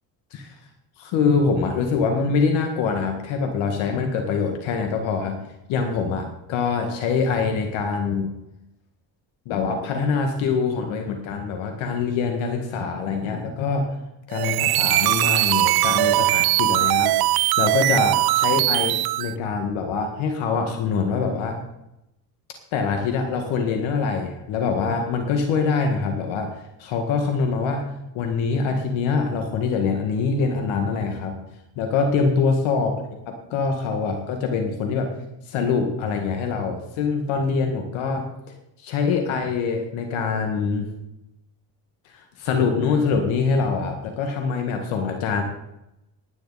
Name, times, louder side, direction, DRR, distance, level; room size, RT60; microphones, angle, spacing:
voice 1, 1.0-5.4 5.7-8.3 9.5-13.9 14.3-21.6 22.7-26.5 26.8-27.8 28.1-31.4 31.8-32.9 33.3-35.1 35.5-38.3 38.8-40.9 42.1-45.4, left 5 dB, 75° left, 4 dB, 2.0 m, -24 dB
sound 1, 14.3-19.3, right 17 dB, 50° right, 0.5 m, -20 dB
15.0 x 10.0 x 4.2 m, 0.86 s
hypercardioid pair, 55°, 47 cm